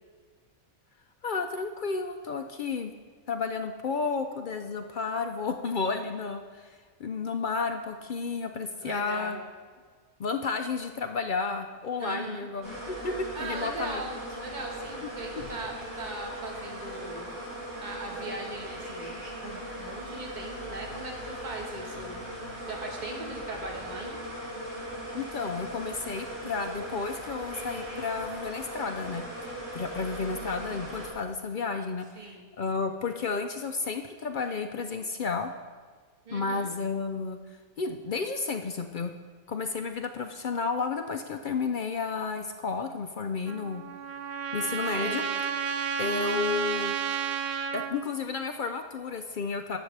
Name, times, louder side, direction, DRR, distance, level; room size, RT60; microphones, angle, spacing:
voice 1, 1.2-2.9 3.3-9.4 10.2-14.0 25.1-29.2 29.7-35.5 36.3-37.4 37.8-39.1 39.5-43.8 44.5-45.2 46.0-47.0 47.7-49.8, left 4 dB, 60° left, 6 dB, 0.5 m, -32 dB
voice 2, 8.8-9.4 12.0-12.5 13.3-17.3 17.8-19.1 19.4-22.2 22.7-24.2 32.2-32.5 36.2-36.7 45.0-45.4, right 2 dB, 35° right, 0 dB, 1.6 m, -39 dB
sound 1, 12.6-31.1, equal, 80° right, 3.9 m, -39 dB
Trumpet, 43.5-48.0, right 7 dB, 55° right, 0.8 m, -31 dB
18.5 x 7.1 x 3.4 m, 1.5 s
omnidirectional pair, 1.4 m